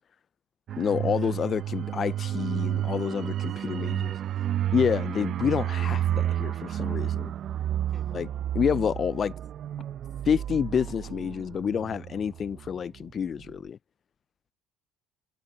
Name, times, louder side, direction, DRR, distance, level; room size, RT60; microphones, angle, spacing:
sound 1, 0.7-13.0 13.3-13.5, right 11 dB, 55° right, 0.9 m, -31 dB
voice 1, 0.8-4.1 4.7-7.3 8.1-8.3 8.5-9.3 10.3-13.8, left 7 dB, 40° left, 0.3 m, -28 dB
voice 2, 3.6-4.4 7.9-8.2, right 4 dB, 30° right, 5.1 m, -50 dB
supercardioid pair, 80°, 0 cm